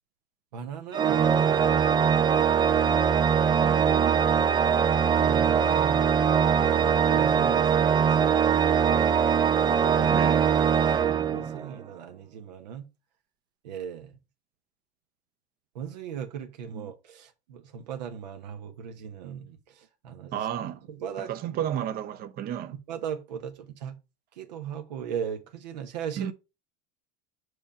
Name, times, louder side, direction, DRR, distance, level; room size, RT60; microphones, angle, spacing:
voice 1, 0.5-1.9 5.2-8.5 8.8-9.0 9.6-10.3 11.0-12.9 13.6-14.1 15.7-19.6 20.0-20.3 20.6-21.6 22.9-24.0 24.4-26.3, right 8 dB, 80° right, 1.1 m, -38 dB
Organ, 0.9-11.8, right 7 dB, 20° right, 0.4 m, -22 dB
voice 2, 3.5-4.2 10.1-10.5 16.7-16.9 20.3-20.8 21.2-22.7 26.2-26.3, right 10 dB, 45° right, 0.8 m, -33 dB
5.8 x 5.0 x 4.9 m
hypercardioid pair, 100°, 21 cm